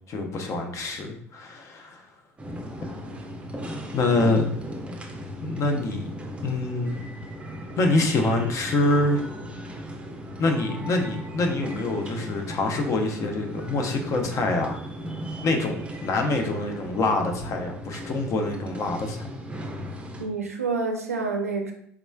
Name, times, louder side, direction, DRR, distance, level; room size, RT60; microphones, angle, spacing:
voice 1, 0.1-2.1 3.9-4.5 5.4-6.0 6.4-7.1 7.8-9.2 10.4-14.8 15.4-15.8 16.0-19.3, left 2 dB, 40° left, 4 dB, 0.6 m, -25 dB
sound 1, 2.4-20.3, equal, 15° right, 0.5 m, -37 dB
voice 2, 20.2-21.7, right 4 dB, 90° right, 3 dB, 0.4 m, -28 dB
3.4 x 3.0 x 2.2 m, 0.65 s
figure-of-eight pair, 65°, 8 cm